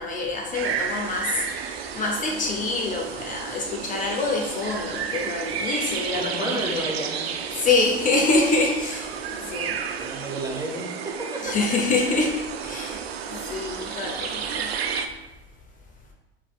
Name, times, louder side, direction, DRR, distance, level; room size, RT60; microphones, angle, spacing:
voice 1, 0.0-6.8 7.5-9.8 11.4-14.7, left 3 dB, 25° left, 0 dB, 0.7 m, -26 dB
sound 1, 0.5-15.1, right 7 dB, 85° right, 0.5 m, -32 dB
voice 2, 6.1-7.2 10.0-11.5, right 2 dB, 10° right, 0 dB, 0.8 m, -31 dB
5.6 x 3.1 x 2.3 m, 1.0 s
hypercardioid pair, 100°, 30 cm